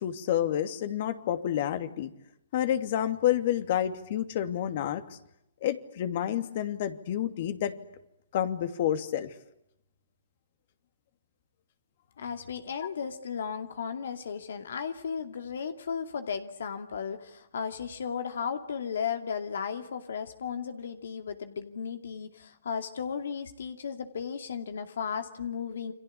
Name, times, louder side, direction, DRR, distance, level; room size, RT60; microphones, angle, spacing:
voice 1, 0.0-2.1 2.5-5.0 5.6-7.7 8.3-9.3, left 11 dB, 50° left, 10 dB, 2.7 m, -29 dB
voice 2, 12.2-25.9, left 6 dB, 75° left, 8 dB, 2.5 m, -35 dB
29.5 x 23.5 x 8.6 m, 0.83 s
hypercardioid pair, 145°, 0 cm